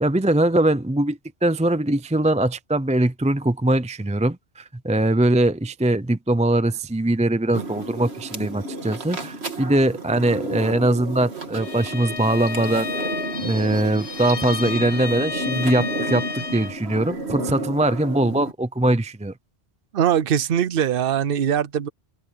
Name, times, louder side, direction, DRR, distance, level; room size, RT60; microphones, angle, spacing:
voice 1, 0.0-13.0 13.4-19.3, right 1 dB, 10° right, 0.5 m, -22 dB
sound 1, 7.5-18.5, right 2 dB, 85° right, 2.4 m, -32 dB
Bowed string instrument, 11.5-16.8, left 4 dB, 65° left, 1.6 m, -32 dB
voice 2, 19.9-21.9, right 9 dB, 65° right, 0.8 m, -21 dB
omnidirectional pair, 1.1 m